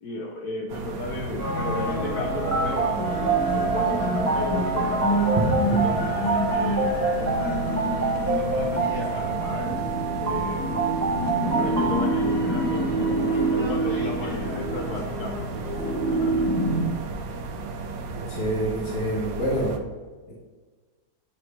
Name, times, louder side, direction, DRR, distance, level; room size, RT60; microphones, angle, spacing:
voice 1, 0.0-3.3 3.5-5.4 5.8-9.8 10.2-10.8 11.6-15.6 16.1-16.5, left 2 dB, 70° left, -1 dB, 1.3 m, -34 dB
sound 1, 0.7-19.8, right 4 dB, 65° right, 1.0 m, -34 dB
sound 2, 1.4-16.9, right 1 dB, 85° left, 3.0 m, -27 dB
sound 3, 2.4-11.9, right 4 dB, 20° right, 0.4 m, -26 dB
voice 2, 18.2-19.8, equal, 50° left, -6 dB, 2.1 m, -27 dB
9.3 x 3.2 x 4.4 m, 1.4 s
omnidirectional pair, 1.8 m